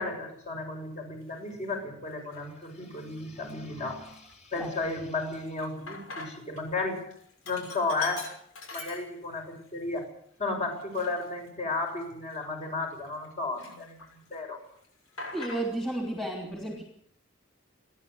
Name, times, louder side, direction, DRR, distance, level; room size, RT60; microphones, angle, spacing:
voice 1, 0.0-7.1 7.4-8.3 8.7-10.1 10.4-14.6, left 3 dB, 35° left, 2 dB, 6.4 m, -33 dB
Sink (filling or washing), 1.3-1.5 2.2-2.7 3.1-3.2 3.5-6.6 6.9-9.5 9.9-10.0 10.7-13.3 13.6-14.3 14.6-16.0, left 3 dB, 85° left, 6.3 m, -44 dB
voice 2, 15.3-16.8, right 1 dB, ahead, 2 dB, 3.0 m, -32 dB
29.5 x 11.0 x 8.1 m, 0.64 s
head